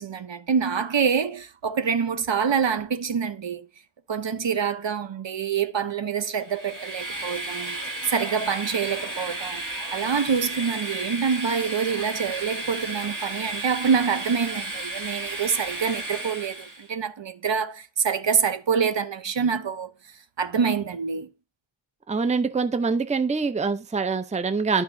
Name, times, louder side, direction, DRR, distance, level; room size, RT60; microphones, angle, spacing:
voice 1, 0.0-3.7 4.1-9.6 9.9-19.9 20.4-21.3, right 6 dB, 65° right, 0.8 m, -26 dB
Train, 6.4-16.9, right 2 dB, 40° right, 2.0 m, -33 dB
voice 2, 22.1-24.8, right 4 dB, 15° right, 0.5 m, -24 dB
12.5 x 4.7 x 2.6 m
wide cardioid pair, 70°, 48 cm